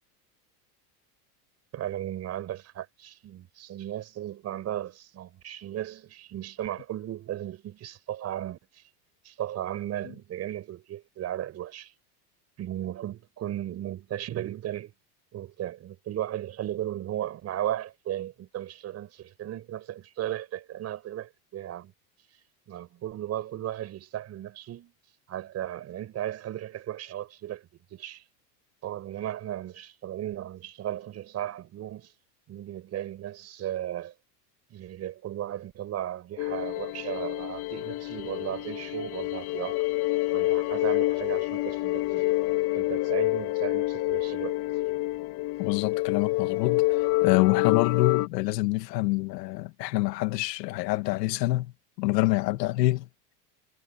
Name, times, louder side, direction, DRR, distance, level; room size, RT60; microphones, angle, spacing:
voice 1, 1.7-8.8 9.2-11.9 12.6-14.9 15.3-21.9 22.7-24.9 25.3-28.2 28.8-32.1 32.5-34.1 34.7-39.8 40.3-42.2 42.7-44.6, right 12 dB, 30° right, 6.4 m, -35 dB
sound 1, 36.4-48.3, left 20 dB, 50° left, 4.0 m, -27 dB
voice 2, 45.6-53.1, left 19 dB, 90° left, 2.1 m, -26 dB
supercardioid pair, 165°, 48 cm